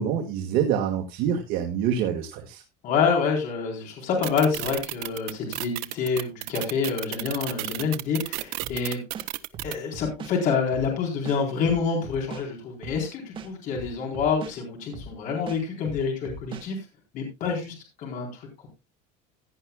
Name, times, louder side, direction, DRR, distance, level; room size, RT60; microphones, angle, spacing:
voice 1, 0.0-2.6, right 8 dB, 55° right, 3 dB, 1.9 m, -26 dB
voice 2, 2.8-9.0 9.6-16.8 17.1-18.7, left 5 dB, 45° left, 1 dB, 4.1 m, -27 dB
sound 1, 4.2-9.7, right 21 dB, 75° right, 0.9 m, -32 dB
sound 2, 8.6-8.8 9.1-10.3 10.7-10.9 11.2-12.5 12.8-13.0 13.3-14.6 14.9-15.1 15.5-16.7, right 4 dB, 25° right, 1.7 m, -39 dB
16.5 x 10.0 x 2.3 m, 0.24 s
cardioid pair, 165°, 19 cm